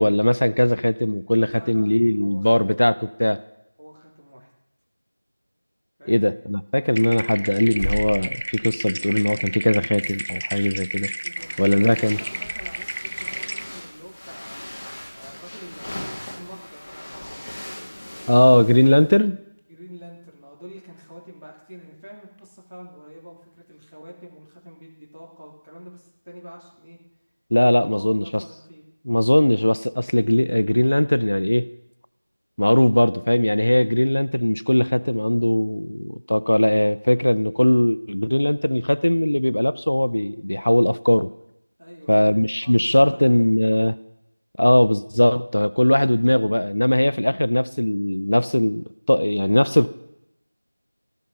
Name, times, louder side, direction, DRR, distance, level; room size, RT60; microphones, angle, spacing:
voice 1, 0.0-2.9 3.2-3.4 6.1-11.1 11.6-12.2 18.3-19.4 27.5-28.4 29.1-31.7 32.6-41.3 42.1-44.0 44.6-49.9, left 1 dB, 55° left, 17 dB, 0.4 m, -19 dB
voice 2, 1.5-1.9 2.1-2.6 3.8-4.5 6.0-6.3 11.2-17.1 19.7-27.0 27.8-28.8 41.8-43.5, equal, 70° right, -3 dB, 3.3 m, -44 dB
sound 1, 7.0-13.6, right 1 dB, 40° right, 0.6 m, -32 dB
sound 2, 7.5-9.6 10.0-19.6 22.4-22.5, equal, 75° left, 2.6 m, -40 dB
sound 3, 11.4-19.2, left 1 dB, 25° left, 2.3 m, -39 dB
17.5 x 6.5 x 5.6 m, 0.84 s
figure-of-eight pair, 175°, 0 cm